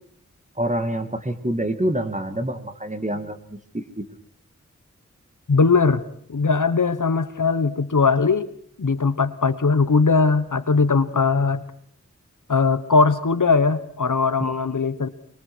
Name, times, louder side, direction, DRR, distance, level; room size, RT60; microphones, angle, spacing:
voice 1, 0.6-4.0 14.4-14.5, right 1 dB, 25° right, 7 dB, 2.3 m, -27 dB
voice 2, 5.5-6.0 6.3-8.5 8.8-11.6 12.5-15.1, left 4 dB, 80° left, 12 dB, 1.3 m, -20 dB
23.5 x 23.0 x 6.3 m, 0.63 s
wide cardioid pair, 55°, 30 cm